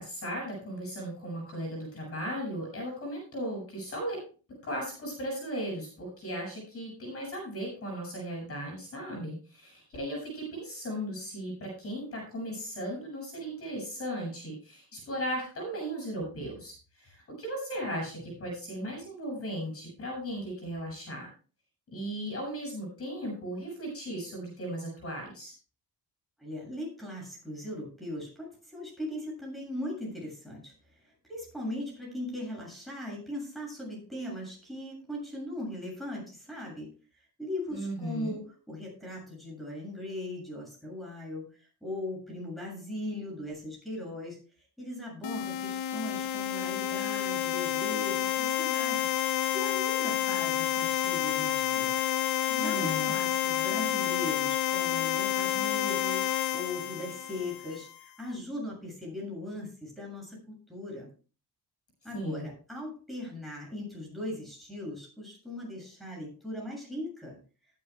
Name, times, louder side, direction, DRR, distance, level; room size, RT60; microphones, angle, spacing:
voice 1, 0.0-4.2 4.6-21.3 21.9-25.5 37.7-38.4 52.6-53.1 62.1-62.4, equal, 35° left, 0 dB, 7.4 m, -36 dB
voice 2, 26.4-30.7 31.3-36.9 37.4-44.4 44.8-49.1 49.5-51.9 52.5-56.2 56.5-61.1 62.0-67.4, left 1 dB, ahead, -2 dB, 7.3 m, -39 dB
sound 1, 45.2-57.9, left 11 dB, 85° left, 0.8 m, -29 dB
19.5 x 9.7 x 2.3 m, 0.37 s
cardioid pair, 160°, 39 cm